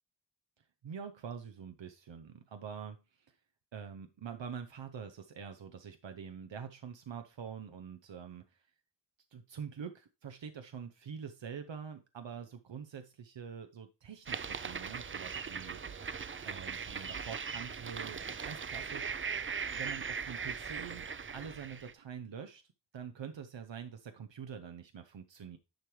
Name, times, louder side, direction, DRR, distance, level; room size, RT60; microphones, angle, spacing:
voice 1, 0.6-3.4 3.7-8.6 9.3-15.8 16.5-19.1 19.7-21.1 21.3-25.6, right 7 dB, 85° right, 7 dB, 0.7 m, -45 dB
sound 1, 14.3-21.9, right 6 dB, 30° right, 0.4 m, -39 dB
10.5 x 4.5 x 3.1 m, 0.28 s
wide cardioid pair, 65°, 43 cm